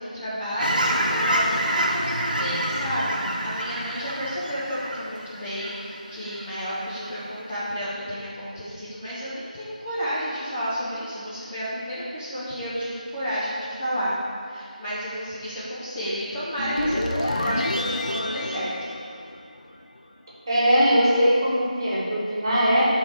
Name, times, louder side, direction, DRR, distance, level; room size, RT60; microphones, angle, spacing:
voice 1, 0.0-14.1 14.5-18.7, equal, 15° left, -11 dB, 0.6 m, -31 dB
Fowl / Chirp tweet, 0.6-6.4 6.8-7.1, right 1 dB, 80° right, 1.0 m, -27 dB
sound 1, 16.6-19.8, left 1 dB, 55° left, 0.6 m, -28 dB
voice 2, 20.5-22.9, equal, 30° right, -7 dB, 1.6 m, -20 dB
8.3 x 3.8 x 4.5 m, 2.2 s
figure-of-eight pair, 170°, 5 cm